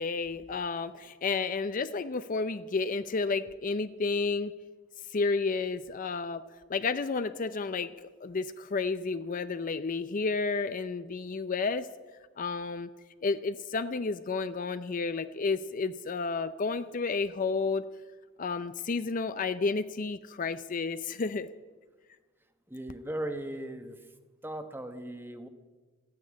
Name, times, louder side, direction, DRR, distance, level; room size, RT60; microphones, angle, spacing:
voice 1, 0.0-4.5 5.1-6.4 6.7-11.9 12.4-12.9 13.2-17.8 18.4-21.5, left 4 dB, 40° left, 12 dB, 0.5 m, -31 dB
voice 2, 22.7-24.0 24.4-25.5, right 1 dB, 10° right, 8 dB, 1.0 m, -38 dB
14.0 x 9.6 x 9.7 m, 1.3 s
head